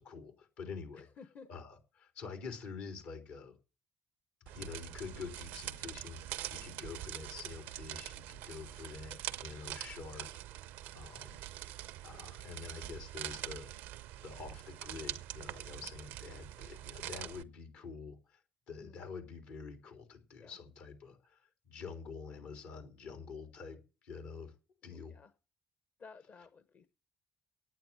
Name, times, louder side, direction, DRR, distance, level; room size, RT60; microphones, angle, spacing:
voice 1, 0.0-1.1 1.5-3.5 4.5-10.3 10.5-11.4 12.0-13.7 14.2-24.5 24.8-25.2 26.4-26.5, left 5 dB, 85° left, 5 dB, 3.7 m, -47 dB
voice 2, 1.2-1.5 18.8-19.0 20.4-20.6 25.1-25.3 26.0-26.9, left 5 dB, 55° left, 11 dB, 1.1 m, -54 dB
sound 1, 4.5-17.4, right 14 dB, 85° right, 0.6 m, -44 dB
9.2 x 9.2 x 9.2 m, 0.33 s
supercardioid pair, 55°, 3 cm